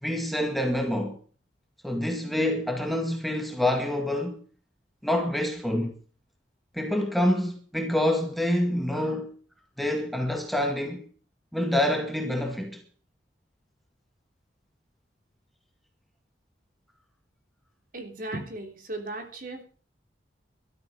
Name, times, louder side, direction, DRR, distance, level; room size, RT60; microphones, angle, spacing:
voice 1, 0.0-1.2 1.8-4.4 5.0-6.0 6.7-9.3 9.8-11.1 11.5-12.8, left 1 dB, ahead, 2.0 m, -27 dB
voice 2, 17.9-19.6, right 2 dB, 50° right, 3.4 m, -36 dB
16.0 x 13.0 x 5.1 m
head